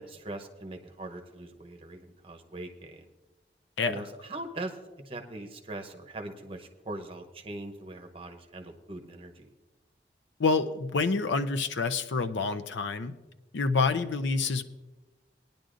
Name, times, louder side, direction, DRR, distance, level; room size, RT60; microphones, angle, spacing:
voice 1, 0.0-3.0 3.9-4.8 5.1-9.5, right 2 dB, 30° right, 5 dB, 0.8 m, -41 dB
voice 2, 10.4-13.2 13.5-14.6, left 4 dB, 90° left, 10 dB, 0.6 m, -27 dB
20.5 x 10.5 x 2.5 m, 1.2 s
head